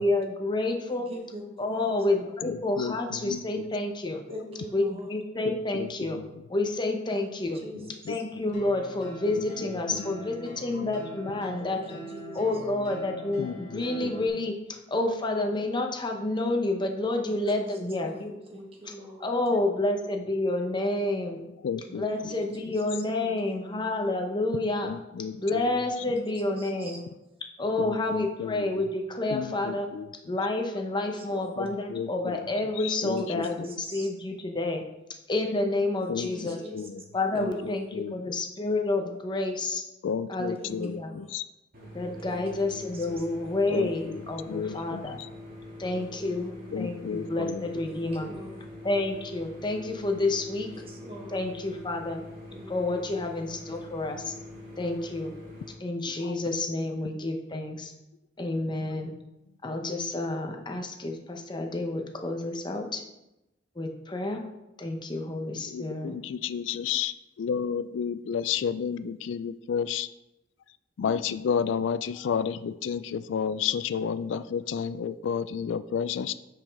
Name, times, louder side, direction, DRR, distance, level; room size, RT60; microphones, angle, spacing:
voice 1, 0.0-1.1 1.6-4.2 4.7-6.2 6.5-7.6 8.1-11.8 12.3-18.3 18.8-18.9 19.2-21.5 21.9-24.9 25.4-27.0 27.6-29.9 30.3-34.8 35.3-36.6 37.1-39.9 40.3-41.2 41.9-45.2 45.8-46.5 46.7-48.3 48.8-50.7 51.3-52.2 52.7-54.3 54.8-55.3 55.8-57.9 58.4-59.1 59.6-63.0 63.8-64.4 64.8-66.2, left 2 dB, 25° left, 3 dB, 0.8 m, -29 dB
voice 2, 0.9-1.9 4.3-5.1 7.1-7.3 7.5-7.8 11.6-11.8 12.1-12.5 17.2-19.3 22.1-22.2 22.6-22.7 23.1-23.9 26.0-26.1 26.5-27.0 31.3-31.6 33.0-33.1 33.4-34.1 36.0-36.8 37.2-37.7 40.6-41.3 42.3-42.4 42.7-43.0 45.9-46.6 47.9-48.6 50.7-51.5 52.5-52.9, right 1 dB, 30° right, 1 dB, 1.3 m, -44 dB
voice 3, 5.5-5.9 8.1-8.2 13.4-14.1 21.6-22.0 24.9-25.6 27.8-28.6 29.3-30.1 31.6-32.1 32.8-33.5 36.1-36.9 37.4-37.5 37.9-38.1 40.0-41.4 43.7-43.9 44.5-45.0 46.7-47.6 65.7-70.1 71.0-76.3, left 7 dB, 70° left, 14 dB, 0.3 m, -31 dB
sound 1, 8.5-14.3, equal, 40° left, 2.2 m, -43 dB
sound 2, 41.7-55.7, left 1 dB, 50° right, 2.0 m, -44 dB
8.8 x 5.1 x 3.5 m, 0.92 s
head